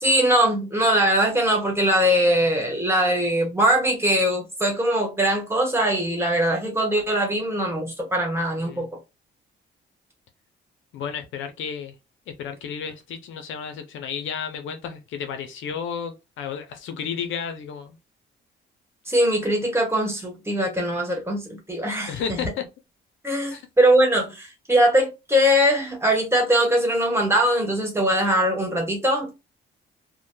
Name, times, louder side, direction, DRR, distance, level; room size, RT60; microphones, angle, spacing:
voice 1, 0.0-8.9 19.1-22.2 23.2-29.3, equal, 10° right, 1.2 m, -21 dB
voice 2, 10.9-12.0 12.3-18.0 22.1-22.6 23.5-23.6, left 7 dB, 80° left, 0.6 m, -32 dB
2.9 x 2.1 x 2.2 m
cardioid pair, 90°, 20 cm